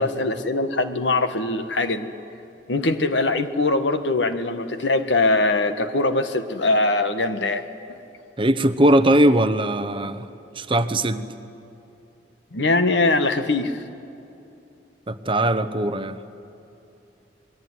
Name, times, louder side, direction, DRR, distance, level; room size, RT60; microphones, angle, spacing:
voice 1, 0.0-2.1 2.7-7.6 12.5-13.7, left 2 dB, 80° left, 9 dB, 1.6 m, -22 dB
voice 2, 8.4-10.3 10.6-11.3 15.1-16.2, right 1 dB, 30° right, 11 dB, 1.0 m, -20 dB
27.0 x 21.0 x 9.7 m, 2.8 s
head